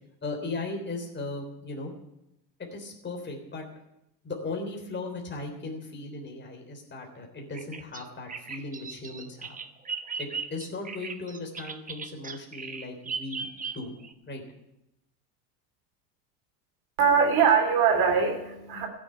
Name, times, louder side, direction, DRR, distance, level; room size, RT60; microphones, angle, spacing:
voice 1, 0.2-1.9 2.7-3.7 4.2-9.6 10.2-13.5 13.7-13.9 14.3-14.4, left 3 dB, 20° left, 2 dB, 3.6 m, -37 dB
Bird vocalization bird call bird song, 7.5-14.1, right 5 dB, 15° right, 0.9 m, -37 dB
voice 2, 17.0-18.9, right 6 dB, 50° right, 2 dB, 3.0 m, -22 dB
14.5 x 7.4 x 9.0 m, 0.89 s
hypercardioid pair, 90°, 49 cm